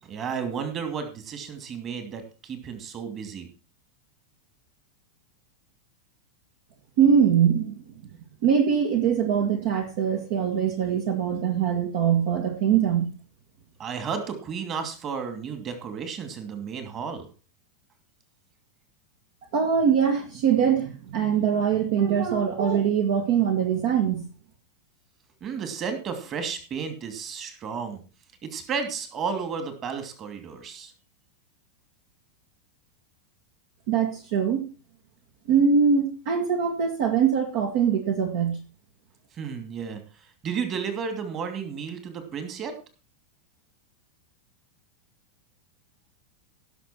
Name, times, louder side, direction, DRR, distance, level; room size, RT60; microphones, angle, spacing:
voice 1, 0.0-3.5 13.8-17.3 25.4-28.0 28.4-30.9 39.3-42.8, right 6 dB, 30° right, 7 dB, 2.6 m, -33 dB
voice 2, 7.0-7.8 8.4-13.1 19.5-24.2 33.9-34.7 35.5-38.6, right 7 dB, 50° right, 3 dB, 1.7 m, -22 dB
17.5 x 6.7 x 4.4 m, 0.35 s
figure-of-eight pair, 90°, 0 cm